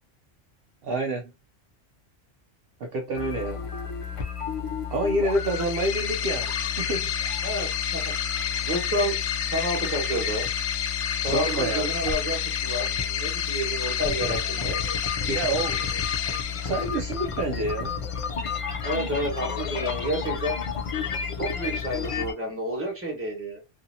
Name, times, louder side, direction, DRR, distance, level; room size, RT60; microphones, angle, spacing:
voice 1, 0.8-1.3 2.8-3.6 4.9-7.1 11.2-11.9 15.3-15.9 16.6-18.0, right 2 dB, 65° right, 0.7 m, -28 dB
sound 1, 3.1-22.3, left 6 dB, 55° left, 0.3 m, -33 dB
sound 2, 5.3-17.2, left 9 dB, 85° left, 0.9 m, -30 dB
voice 2, 7.4-8.1 8.6-9.2 9.5-10.5 11.2-14.8 18.8-20.6 21.4-23.6, equal, 10° right, 1.2 m, -30 dB
2.7 x 2.6 x 2.6 m
omnidirectional pair, 1.2 m